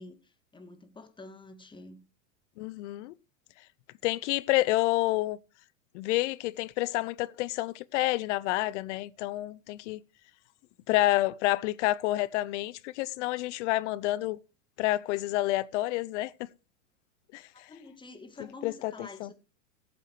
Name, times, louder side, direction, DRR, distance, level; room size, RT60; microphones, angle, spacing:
voice 1, 0.0-2.0 17.5-19.3, left 2 dB, 10° left, 2.2 m, -48 dB
voice 2, 2.6-3.1 4.0-5.4 5.9-10.0 10.9-14.4 14.8-16.3 17.3-17.4 18.6-19.3, left 17 dB, 55° left, 1.0 m, -29 dB
18.0 x 7.5 x 4.8 m
hypercardioid pair, 115°, 41 cm